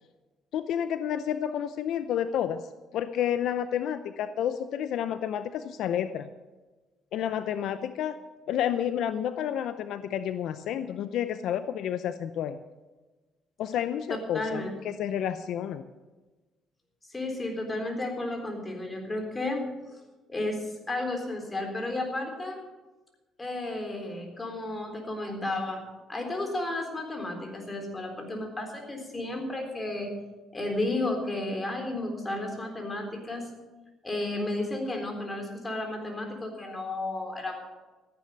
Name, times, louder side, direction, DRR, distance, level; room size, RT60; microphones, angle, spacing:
voice 1, 0.5-2.6 2.9-6.3 7.1-8.2 8.5-12.6 13.6-15.8, left 9 dB, 75° left, 11 dB, 0.6 m, -30 dB
voice 2, 14.3-14.7 17.1-19.7 20.3-22.6 23.4-30.2 30.5-33.5 34.0-37.7, left 2 dB, 20° left, 3 dB, 3.8 m, -33 dB
14.5 x 9.9 x 6.6 m, 1.2 s
cardioid pair, 95°, 0 cm